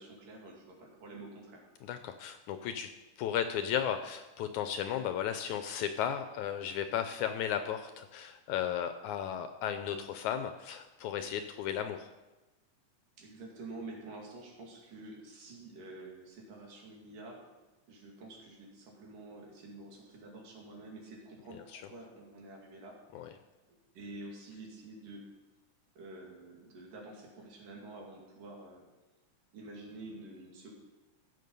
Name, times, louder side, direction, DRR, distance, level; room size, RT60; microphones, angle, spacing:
voice 1, 0.0-1.6 13.2-17.4 17.9-22.9 23.7-25.3 26.0-28.8 29.5-30.7, right 2 dB, 80° right, -1 dB, 4.0 m, -48 dB
voice 2, 1.8-2.9 3.2-12.1 21.5-21.8 23.1-23.3, left 9 dB, 80° left, 8 dB, 1.8 m, -35 dB
16.0 x 6.6 x 5.4 m, 1.1 s
omnidirectional pair, 3.8 m